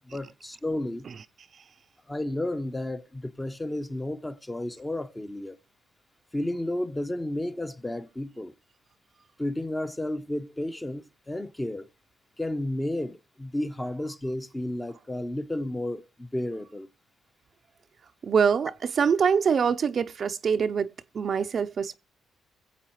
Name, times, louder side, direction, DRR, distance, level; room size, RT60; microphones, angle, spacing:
voice 1, 0.1-1.1 2.1-5.6 6.3-8.5 9.4-11.9 12.4-16.9, left 1 dB, 15° left, 0.8 m, -32 dB
voice 2, 18.2-21.9, right 6 dB, 50° right, 0.6 m, -24 dB
21.5 x 7.8 x 3.0 m
cardioid pair, 90°, 0 cm